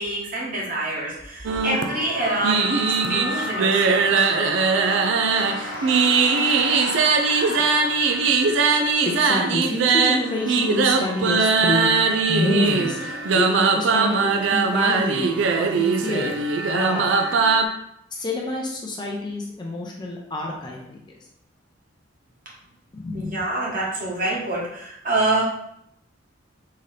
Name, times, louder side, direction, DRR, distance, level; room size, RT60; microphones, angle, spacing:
voice 1, 0.0-4.2 23.1-25.4, right 2 dB, 45° right, -4 dB, 1.1 m, -26 dB
sound 1, 1.4-17.6, right 4 dB, 65° right, 0.4 m, -21 dB
sound 2, 2.1-8.5, left 2 dB, 60° left, 1.1 m, -33 dB
voice 2, 9.1-11.9 12.3-13.0 13.3-16.3 16.7-17.0 18.1-21.0 22.9-23.4, left 2 dB, 25° left, -1 dB, 0.5 m, -27 dB
3.7 x 2.8 x 3.2 m, 0.76 s
head